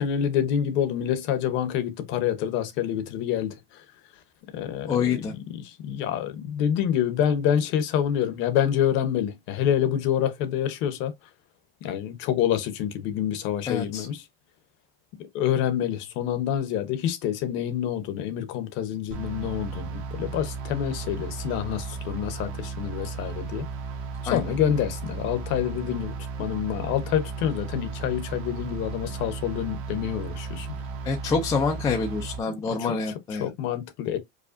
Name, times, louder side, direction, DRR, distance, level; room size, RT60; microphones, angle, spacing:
voice 1, 0.0-3.8 4.5-11.1 11.8-14.2 15.3-23.7 24.2-30.7 32.5-32.6 32.8-33.0 33.4-34.2, left 10 dB, 40° left, 0.8 m, -27 dB
voice 2, 4.9-5.3 13.7-14.1 24.3-24.4 31.0-33.5, left 5 dB, 10° left, 0.3 m, -26 dB
sound 1, 19.1-32.4, right 4 dB, 45° right, 1.0 m, -35 dB
4.9 x 2.2 x 2.5 m
supercardioid pair, 160°, 30 cm